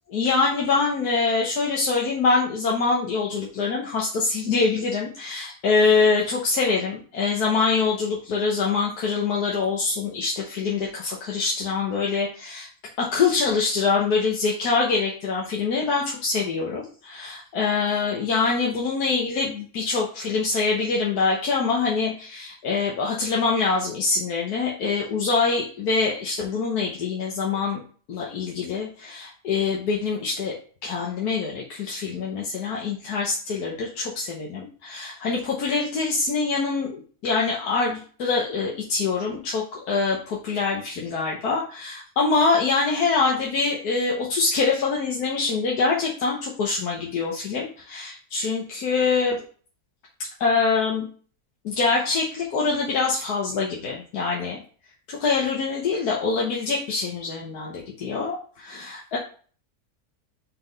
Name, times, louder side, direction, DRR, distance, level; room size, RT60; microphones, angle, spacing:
voice 1, 0.1-12.7 13.0-27.8 28.1-30.5 30.8-49.4 50.4-51.1 51.6-54.6 55.1-59.2, left 4 dB, 85° left, -2 dB, 1.6 m, -24 dB
5.1 x 3.9 x 5.2 m, 0.41 s
omnidirectional pair, 1.6 m